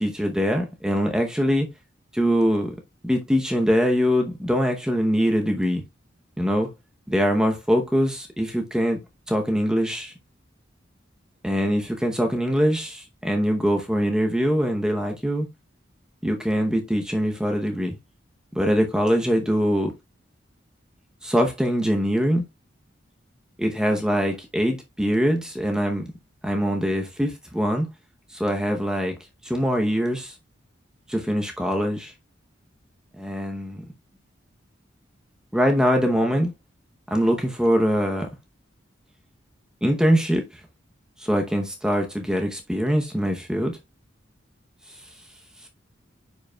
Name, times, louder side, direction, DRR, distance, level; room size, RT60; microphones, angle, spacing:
voice 1, 0.0-1.7 2.1-2.8 3.0-5.8 6.4-6.7 7.1-9.0 9.3-10.1 11.4-15.5 16.2-18.0 18.5-19.9 21.2-22.4 23.6-26.0 26.4-27.9 28.3-29.1 29.4-30.3 31.1-32.1 33.2-33.8 35.5-36.5 37.1-38.3 39.8-40.4 41.2-43.8, equal, 5° right, 0.8 m, -23 dB
9.3 x 5.1 x 2.3 m
head